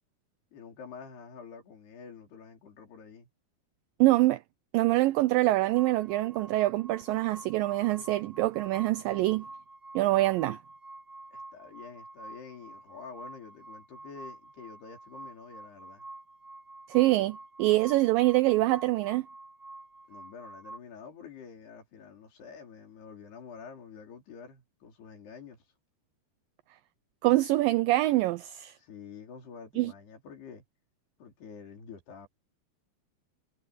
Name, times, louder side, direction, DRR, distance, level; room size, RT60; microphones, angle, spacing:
voice 1, 0.5-3.3 11.3-16.1 20.1-25.6 28.8-30.6 31.2-32.3, left 6 dB, 80° left, 6.5 m, -48 dB
voice 2, 4.0-4.4 4.7-9.5 10.0-10.6 16.9-19.3 27.2-28.8 29.8-29.9, right 18 dB, 90° right, 2.0 m, -25 dB
sound 1, 5.7-20.8, right 2 dB, 25° right, 1.2 m, -48 dB
omnidirectional pair, 4.6 m